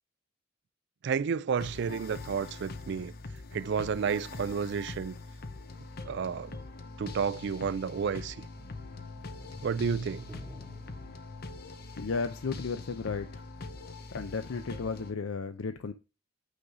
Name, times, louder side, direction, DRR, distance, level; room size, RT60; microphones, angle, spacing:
voice 1, 1.0-3.1 3.5-5.2 6.1-6.6 7.0-8.5 9.6-10.3, right 6 dB, 60° right, 0.4 m, -31 dB
sound 1, 1.6-15.1, left 3 dB, 50° left, 0.8 m, -43 dB
sound 2, 8.6-13.0 13.3-13.4, left 2 dB, 5° right, 2.3 m, -50 dB
voice 2, 12.0-13.4 14.1-15.9, left 4 dB, 85° left, 0.6 m, -34 dB
8.6 x 4.0 x 4.9 m
head